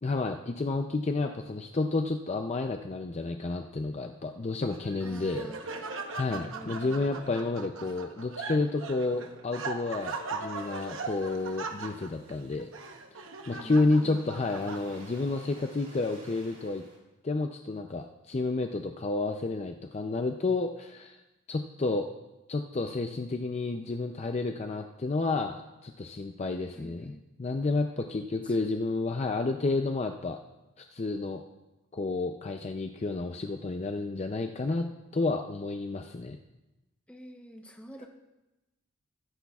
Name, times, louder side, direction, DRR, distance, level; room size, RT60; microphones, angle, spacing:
voice 1, 0.0-12.7 13.5-16.8 17.2-21.2 21.5-22.1 22.5-30.4 30.8-31.4 31.9-34.9 35.1-36.4, left 3 dB, 30° left, 5 dB, 0.4 m, -30 dB
Laughter, 4.7-15.2, right 4 dB, 65° right, 0.9 m, -40 dB
voice 2, 5.0-5.6 6.3-7.1 13.5-14.2 26.7-27.2 28.4-28.6 28.9-29.1 37.1-38.1, equal, 5° left, 3 dB, 0.8 m, -47 dB
sound 1, 10.5-17.0, right 1 dB, 40° right, 3.1 m, -55 dB
22.5 x 10.0 x 2.4 m, 1.0 s
head